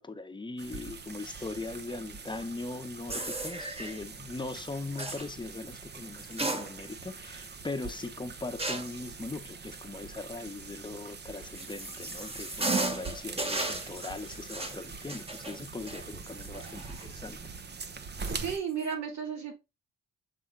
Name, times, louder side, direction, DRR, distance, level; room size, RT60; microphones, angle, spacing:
voice 1, 0.0-17.4, left 3 dB, 15° left, 0.9 m, -40 dB
sound 1, 0.6-18.6, right 5 dB, 35° right, 0.8 m, -44 dB
sound 2, 3.1-4.0 5.0-5.3 6.2-7.1 7.4-7.5 8.6-9.0 11.1-17.2 17.6-17.7 18.6-18.9, right 2 dB, 20° right, 1.2 m, -35 dB
voice 2, 18.2-19.5, right 7 dB, 65° right, 2.3 m, -34 dB
7.3 x 3.6 x 3.8 m
cardioid pair, 90°, 30 cm